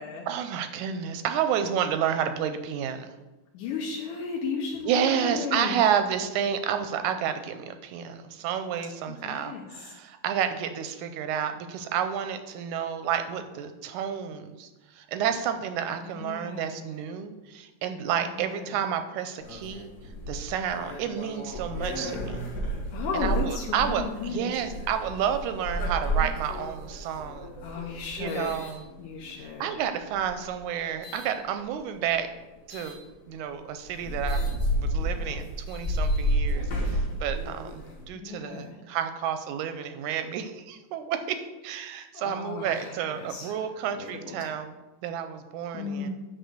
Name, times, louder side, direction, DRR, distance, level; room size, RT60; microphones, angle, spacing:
voice 1, 0.3-3.1 4.9-19.9 20.3-22.4 23.1-27.5 28.2-28.9 29.6-32.3 32.7-33.0 33.3-41.4 41.6-44.7 45.0-46.1, right 8 dB, 80° right, 9 dB, 1.8 m, -30 dB
voice 2, 3.5-5.8 9.1-9.7 16.0-17.1 18.3-18.8 22.9-24.5 27.6-28.7 29.0-29.8 38.1-38.8 42.1-43.5 44.0-44.5 45.7-46.1, left 5 dB, 80° left, -1 dB, 2.4 m, -35 dB
sound 1, 19.4-29.4 30.1-31.3 32.7-33.0 33.5-33.6 33.9-38.1, equal, 35° left, 1.4 m, -31 dB
9.4 x 4.0 x 6.5 m, 1.1 s
omnidirectional pair, 3.8 m